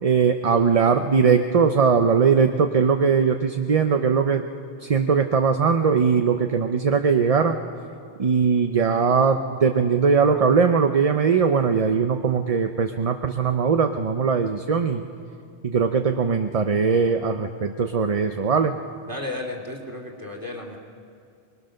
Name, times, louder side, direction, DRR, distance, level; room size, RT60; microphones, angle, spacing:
voice 1, 0.0-4.4 4.8-7.6 8.2-15.0 15.6-18.7, right 5 dB, 40° right, 6 dB, 0.7 m, -20 dB
voice 2, 19.1-20.8, left 2 dB, 20° right, 0 dB, 2.7 m, -33 dB
25.0 x 21.5 x 6.5 m, 2.4 s
omnidirectional pair, 1.1 m